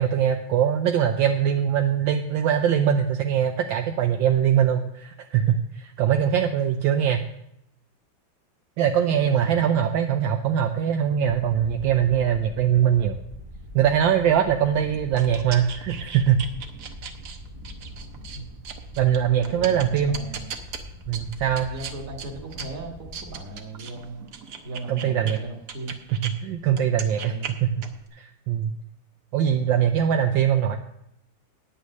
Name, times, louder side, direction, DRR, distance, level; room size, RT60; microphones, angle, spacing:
voice 1, 0.0-7.2 8.8-13.2 13.7-16.4 19.0-20.2 21.1-21.7 24.9-25.4 26.1-27.4 27.6-27.9 28.2-28.7 29.3-30.8, right 9 dB, 75° right, 5 dB, 1.4 m, -22 dB
voice 2, 9.1-9.8 18.3-18.5 19.4-20.5 21.7-24.2 24.6-26.0 27.2-27.5, right 2 dB, 45° right, 2 dB, 2.1 m, -37 dB
sound 1, 11.3-23.4, left 1 dB, 15° right, 1.2 m, -42 dB
sound 2, 14.4-26.3 26.7-28.1, right 6 dB, 60° right, 1.4 m, -39 dB
9.5 x 8.5 x 6.5 m, 0.76 s
omnidirectional pair, 2.2 m